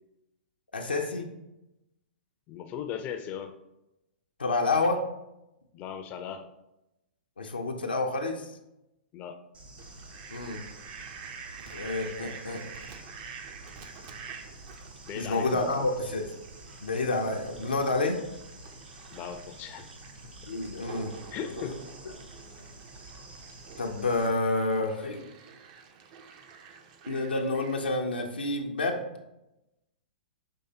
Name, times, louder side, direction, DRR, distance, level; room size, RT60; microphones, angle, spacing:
voice 1, 0.7-1.3 4.4-5.0 7.4-8.5 10.3-10.6 11.7-12.6 15.1-16.3 16.8-18.2 20.5-21.1 21.6-21.7 23.8-25.2 27.1-29.0, left 2 dB, 90° left, 2 dB, 0.6 m, -29 dB
voice 2, 2.5-3.5 5.7-6.5 9.1-9.4 15.1-15.8 18.0-18.1 19.1-19.9 21.3-21.8, left 8 dB, 30° left, 8 dB, 0.4 m, -38 dB
Bird / Insect, 9.5-24.3, right 1 dB, 80° right, 0.9 m, -49 dB
Fowl, 9.8-27.9, right 6 dB, 45° right, 0.5 m, -48 dB
5.4 x 3.2 x 2.7 m, 0.90 s
hypercardioid pair, 115°, 5 cm